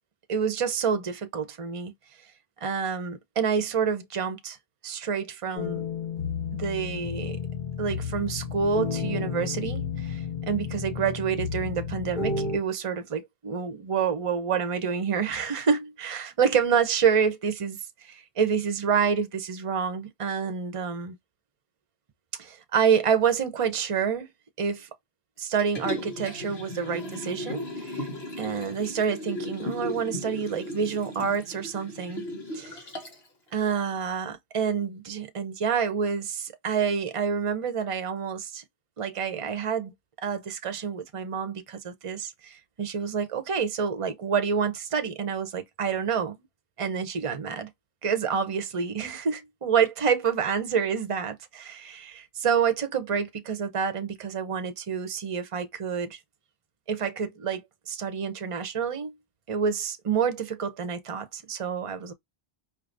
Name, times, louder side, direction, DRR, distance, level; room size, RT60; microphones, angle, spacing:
voice 1, 0.3-1.9 2.6-4.6 4.8-5.8 6.6-7.4 7.8-21.1 22.4-24.3 24.6-24.9 25.4-28.1 28.4-32.2 32.5-32.8 33.5-38.6 39.0-39.9 40.2-46.4 46.8-47.7 48.0-56.2 56.9-59.1 59.5-62.1, right 6 dB, 35° right, 0.7 m, -28 dB
sound 1, 5.6-12.6, left 6 dB, 50° left, 1.5 m, -32 dB
Liquid, 25.6-33.3 33.7-33.8, left 1 dB, 70° left, 1.5 m, -36 dB
4.9 x 2.7 x 2.5 m
omnidirectional pair, 1.1 m